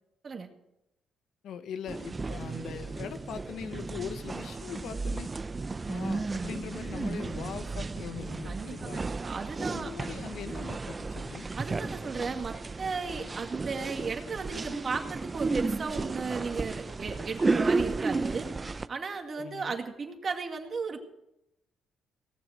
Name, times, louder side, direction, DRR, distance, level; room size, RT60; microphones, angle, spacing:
voice 1, 1.4-5.3 5.9-9.0 9.7-11.5 19.4-19.8, left 8 dB, 75° left, 10 dB, 1.0 m, -41 dB
sound 1, 1.9-18.9, right 3 dB, 25° right, 0.6 m, -33 dB
voice 2, 8.4-9.9 11.6-18.5 18.9-21.0, right 4 dB, 40° right, 4 dB, 2.2 m, -35 dB
18.0 x 7.2 x 8.8 m, 0.87 s
cardioid pair, 90°, 0 cm